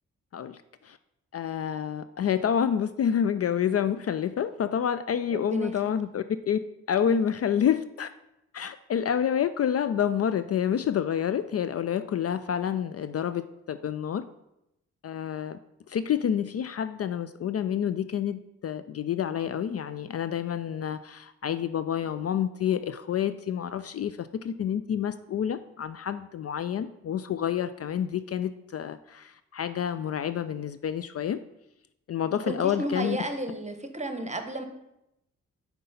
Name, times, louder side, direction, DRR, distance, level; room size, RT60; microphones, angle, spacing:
voice 1, 0.3-1.0 1.3-8.1 8.5-14.2 15.0-15.6 15.9-31.4 32.1-33.2, left 9 dB, 45° left, 13 dB, 0.4 m, -28 dB
voice 2, 5.3-5.9 7.1-7.2 32.4-34.6, right 1 dB, 20° right, 6 dB, 1.1 m, -33 dB
5.4 x 4.3 x 5.6 m, 0.86 s
supercardioid pair, 40°, 35 cm